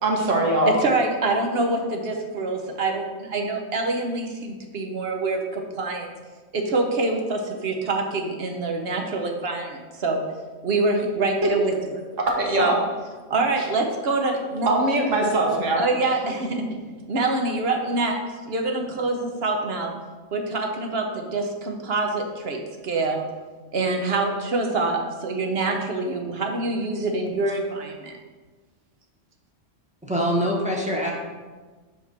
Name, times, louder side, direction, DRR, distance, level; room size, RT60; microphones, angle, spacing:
voice 1, 0.0-0.8 12.4-12.7 14.6-15.8, right 2 dB, 75° right, 0 dB, 1.6 m, -21 dB
voice 2, 0.7-6.1 6.5-10.2 10.6-12.0 12.6-12.8 13.3-14.7 15.8-16.7 17.1-18.2 18.5-19.9 20.3-23.2 23.7-28.2, right 3 dB, 55° right, 3 dB, 1.1 m, -25 dB
voice 3, 30.0-31.2, equal, 5° right, -3 dB, 1.3 m, -24 dB
7.7 x 3.7 x 5.9 m, 1.3 s
omnidirectional pair, 1.3 m